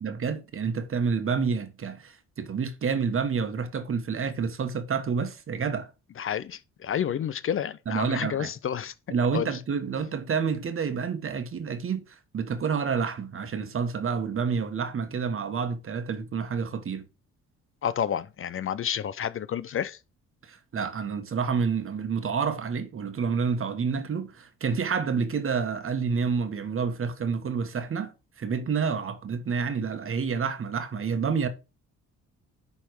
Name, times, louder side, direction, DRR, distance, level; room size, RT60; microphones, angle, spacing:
voice 1, 0.0-5.9 7.9-8.5 9.1-17.0 20.4-28.1 28.4-31.5, right 5 dB, 45° right, 1.4 m, -29 dB
voice 2, 6.2-8.9 9.3-9.6 17.8-20.0, left 9 dB, 45° left, 0.5 m, -30 dB
10.5 x 3.5 x 4.7 m
cardioid pair, 90°, 30 cm